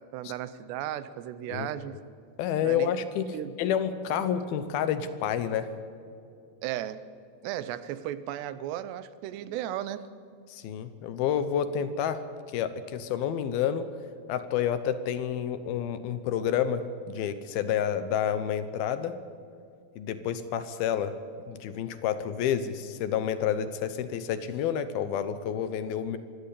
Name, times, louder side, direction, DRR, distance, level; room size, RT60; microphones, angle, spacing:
voice 1, 0.1-2.0 2.6-2.9 3.3-3.6 6.6-7.0 7.4-10.1, right 12 dB, 90° right, 14 dB, 3.1 m, -35 dB
voice 2, 2.4-5.7 10.5-12.2 12.5-13.9 14.3-19.2 20.0-21.1 21.5-26.2, left 9 dB, 75° left, 12 dB, 2.7 m, -29 dB
24.0 x 16.0 x 8.5 m, 2.5 s
omnidirectional pair, 4.8 m